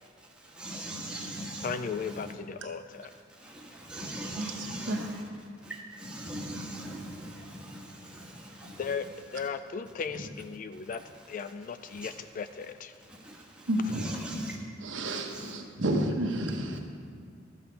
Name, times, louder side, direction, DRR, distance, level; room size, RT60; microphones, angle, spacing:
voice 1, 0.5-2.3 3.4-5.2 5.6-8.9 11.9-12.1 13.2-14.6 15.0-15.5, right 1 dB, 5° right, -3 dB, 1.4 m, -41 dB
voice 2, 1.6-3.1 8.8-9.1 9.3-11.0 11.3-13.0, left 6 dB, 45° left, 11 dB, 0.3 m, -36 dB
voice 3, 13.7-14.1 14.8-16.8, right 1 dB, 70° right, 3 dB, 1.1 m, -30 dB
13.0 x 7.9 x 4.7 m, 2.1 s
head